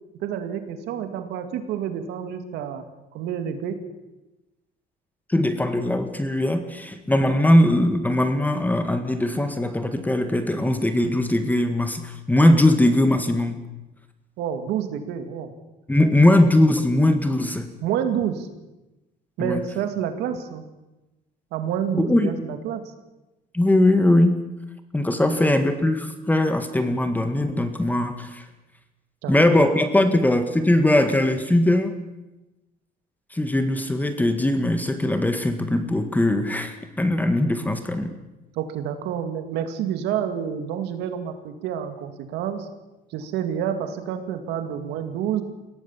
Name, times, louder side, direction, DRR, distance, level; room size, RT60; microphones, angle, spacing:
voice 1, 0.2-2.9 3.1-3.8 14.4-15.5 16.2-16.3 17.8-18.5 19.4-20.6 21.5-22.8 25.2-25.4 29.2-29.6 38.5-42.7 43.1-45.4, right 9 dB, 85° right, 7 dB, 2.3 m, -28 dB
voice 2, 5.3-13.6 15.9-17.7 19.4-19.6 21.9-22.3 23.5-24.4 24.9-28.5 29.3-31.9 33.3-38.1, left 1 dB, 10° left, 8 dB, 1.8 m, -20 dB
22.0 x 17.0 x 7.3 m, 1.0 s
cardioid pair, 110°, 17 cm